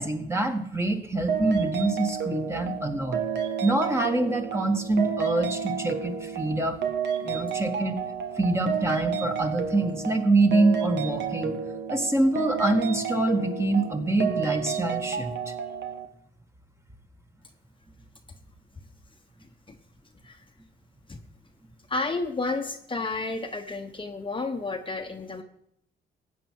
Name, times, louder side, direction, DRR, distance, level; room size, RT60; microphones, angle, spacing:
voice 1, 0.0-3.2 3.6-6.8 7.2-8.0 8.4-11.6 11.9-15.5, right 2 dB, 15° right, 4 dB, 1.7 m, -25 dB
sound 1, 1.3-16.1, right 7 dB, 60° right, 1.4 m, -31 dB
voice 2, 21.9-25.4, left 3 dB, 25° left, 4 dB, 1.1 m, -31 dB
15.5 x 9.3 x 4.7 m, 0.74 s
cardioid pair, 90°, 20 cm